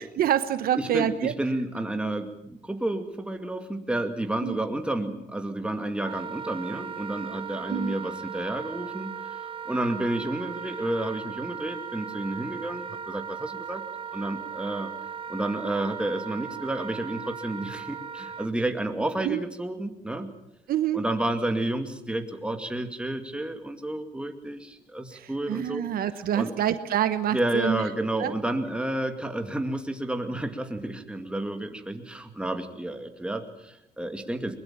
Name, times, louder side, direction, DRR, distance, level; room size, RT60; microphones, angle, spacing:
voice 1, 0.2-1.3 4.4-4.6 7.7-7.9 19.2-19.4 20.7-21.0 25.1-27.8 28.2-28.3, right 10 dB, 60° right, 11 dB, 1.2 m, -26 dB
voice 2, 0.7-9.1 9.7-13.8 14.1-14.9 15.3-20.3 20.9-25.8 26.3-26.5 27.3-34.6, right 1 dB, 5° right, 6 dB, 2.3 m, -30 dB
Wind instrument woodwind instrument, 6.0-18.5, right 7 dB, 30° right, 1.0 m, -38 dB
22.5 x 21.0 x 7.5 m, 0.79 s
cardioid pair, 110°, 17 cm